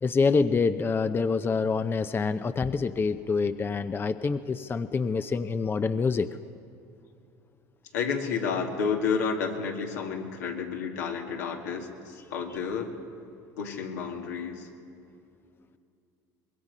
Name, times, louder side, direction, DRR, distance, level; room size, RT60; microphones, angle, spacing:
voice 1, 0.0-6.3, left 4 dB, 25° left, 11 dB, 0.6 m, -26 dB
voice 2, 7.9-12.9 13.6-14.7, left 6 dB, 90° left, 1 dB, 2.3 m, -31 dB
24.5 x 21.5 x 5.5 m, 2.6 s
supercardioid pair, 85°, 9 cm